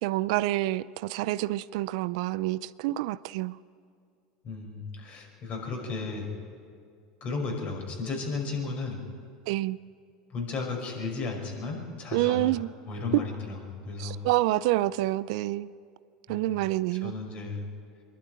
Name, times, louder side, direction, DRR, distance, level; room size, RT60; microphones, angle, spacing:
voice 1, 0.0-3.6 9.5-9.8 12.1-12.7 14.0-15.7 16.3-17.1, right 16 dB, 65° right, 0.5 m, -28 dB
voice 2, 4.4-6.3 7.2-9.0 10.3-12.6 12.9-14.2 16.3-16.4 16.9-17.7, left 4 dB, 45° left, 5.6 m, -34 dB
23.5 x 12.0 x 9.3 m
hypercardioid pair, 90°, 3 cm